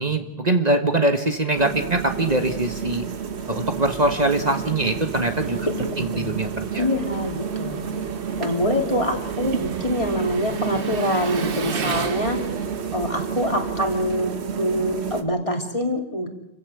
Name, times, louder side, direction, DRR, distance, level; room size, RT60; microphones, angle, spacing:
voice 1, 0.0-3.0 3.5-6.8, right 2 dB, 40° right, 6 dB, 1.4 m, -23 dB
Engine, 1.5-15.1, right 6 dB, 60° right, 1.2 m, -36 dB
sound 1, 1.5-15.2, right 6 dB, 90° right, 1.4 m, -30 dB
voice 2, 5.7-6.4 6.8-7.8 8.4-12.4 12.9-16.3, equal, 30° left, 3 dB, 3.2 m, -25 dB
27.5 x 15.0 x 8.2 m, 0.86 s
omnidirectional pair, 1.1 m